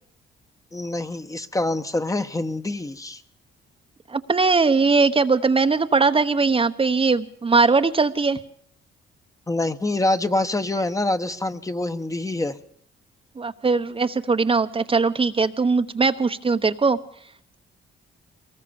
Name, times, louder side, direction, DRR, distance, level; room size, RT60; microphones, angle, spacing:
voice 1, 0.7-3.2 9.5-12.6, left 2 dB, 15° left, 8 dB, 1.3 m, -25 dB
voice 2, 4.1-8.4 13.4-17.0, right 4 dB, 30° right, 8 dB, 1.0 m, -20 dB
23.5 x 19.5 x 7.1 m, 0.63 s
cardioid pair, 90°, 20 cm